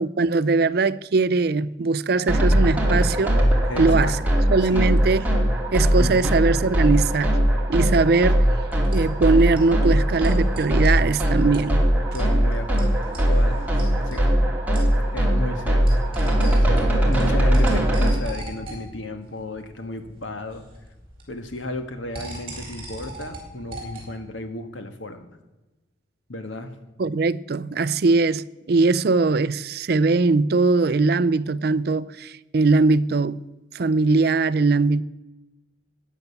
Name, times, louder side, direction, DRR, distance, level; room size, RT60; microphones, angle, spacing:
voice 1, 0.0-3.4 3.8-4.2 4.5-5.3 5.7-7.4 7.7-8.5 8.9-11.8 17.7-17.8 27.0-33.4 33.7-35.0, right 3 dB, 55° right, 0.4 m, -21 dB
sound 1, 2.3-18.1, equal, 10° right, 2.3 m, -20 dB
voice 2, 3.7-4.1 4.7-4.9 5.3-5.5 5.9-6.3 12.1-14.4 15.1-15.9 16.2-20.6 21.3-25.3 26.3-26.7, left 2 dB, 85° left, 1.5 m, -34 dB
sound 2, 8.0-24.2, right 1 dB, 30° right, 4.2 m, -41 dB
14.0 x 9.3 x 6.9 m
head